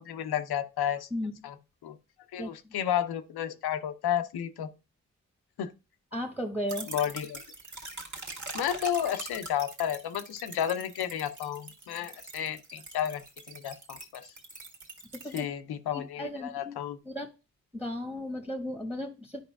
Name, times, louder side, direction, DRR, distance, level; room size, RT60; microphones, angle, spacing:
voice 1, 0.0-1.1 1.4-1.6 1.8-2.0 2.3-4.7 5.6-5.7 6.9-7.4 8.5-14.3 15.3-17.0, left 10 dB, 90° left, 0.6 m, -32 dB
voice 2, 6.1-6.9 15.2-15.5 15.9-16.8 17.0-17.3 17.7-19.4, left 1 dB, 5° right, 1.1 m, -35 dB
sound 1, 6.7-15.4, right 2 dB, 50° right, 1.8 m, -43 dB
10.0 x 4.9 x 2.3 m
cardioid pair, 45°, 37 cm